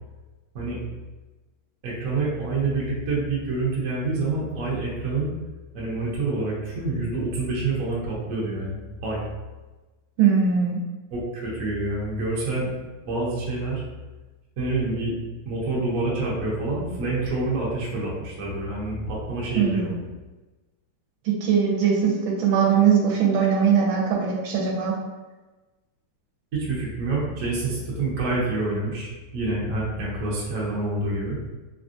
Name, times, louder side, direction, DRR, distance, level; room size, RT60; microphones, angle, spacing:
voice 1, 1.8-5.3 5.7-9.2 11.1-13.8 14.6-15.1 15.4-19.9 26.5-31.4, right 2 dB, 60° right, -5 dB, 0.9 m, -27 dB
voice 2, 10.2-10.8 19.5-20.0 21.4-25.0, right 7 dB, 75° right, -2 dB, 1.4 m, -21 dB
3.5 x 2.4 x 2.5 m, 1.2 s
omnidirectional pair, 2.4 m